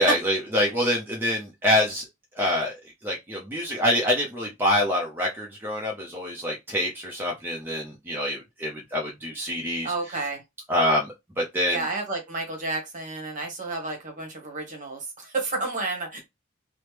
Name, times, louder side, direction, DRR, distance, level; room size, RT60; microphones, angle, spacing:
voice 1, 0.0-2.0 2.3-10.2 10.7-11.9, left 1 dB, 10° right, 0.6 m, -26 dB
voice 2, 9.8-10.4 11.7-16.2, right 3 dB, 40° right, 1.1 m, -31 dB
3.1 x 2.1 x 3.2 m
head